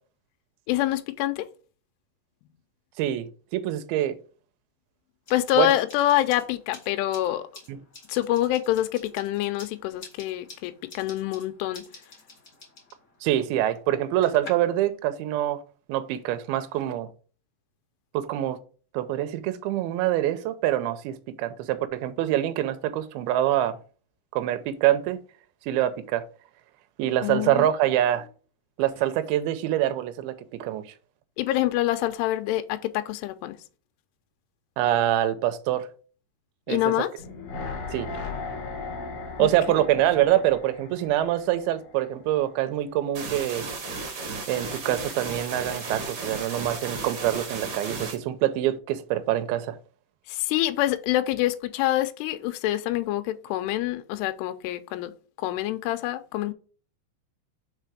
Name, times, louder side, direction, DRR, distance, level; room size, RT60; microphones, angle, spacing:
voice 1, 0.7-1.5 5.3-7.5 8.1-11.9 27.2-27.7 31.4-33.6 36.7-37.1 39.4-39.5 50.3-55.1 55.4-56.5, left 14 dB, 85° left, 2.5 m, -26 dB
voice 2, 3.0-4.2 5.6-5.7 7.7-7.8 13.2-15.6 15.9-17.1 18.1-18.6 18.9-23.8 24.3-25.2 25.7-26.2 27.0-28.3 28.8-30.3 30.6-30.8 34.8-35.9 36.7-37.1 37.9-38.1 39.4-43.7 44.5-49.8, right 12 dB, 80° right, 2.3 m, -25 dB
sound 1, 5.3-14.5, left 3 dB, 30° left, 1.6 m, -49 dB
sound 2, 37.2-42.3 42.6-42.7, left 3 dB, 60° left, 1.7 m, -37 dB
sound 3, 43.1-48.1, right 3 dB, 65° right, 1.4 m, -34 dB
5.6 x 4.1 x 4.8 m
omnidirectional pair, 5.0 m